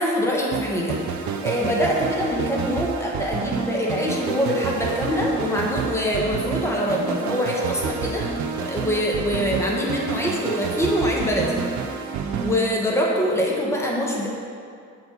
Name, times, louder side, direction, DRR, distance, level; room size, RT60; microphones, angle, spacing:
voice 1, 0.0-8.3 8.6-11.6 12.4-14.3, equal, 10° left, -3 dB, 1.4 m, -24 dB
sound 1, 0.5-13.4, right 5 dB, 75° right, 0.7 m, -29 dB
7.1 x 7.1 x 4.1 m, 2.3 s
cardioid pair, 115°, 29 cm